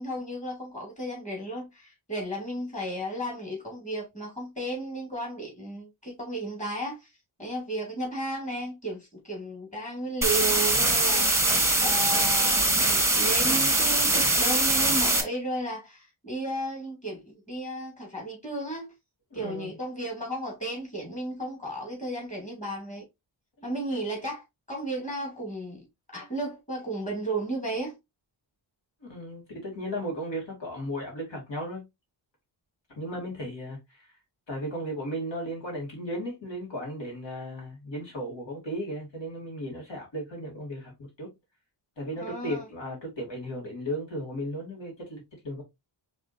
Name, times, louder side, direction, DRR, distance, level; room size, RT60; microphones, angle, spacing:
voice 1, 0.0-7.1 7.4-18.9 19.3-23.1 23.6-25.8 26.1-27.9 42.2-42.7, right 1 dB, 15° left, 2.5 m, -34 dB
sound 1, 10.2-15.2, right 2 dB, 5° right, 1.1 m, -22 dB
voice 2, 19.3-19.7 29.0-31.8 33.0-34.1 34.5-41.3 42.0-45.6, equal, 70° left, 2.7 m, -35 dB
4.9 x 3.6 x 2.6 m
wide cardioid pair, 120°, 46 cm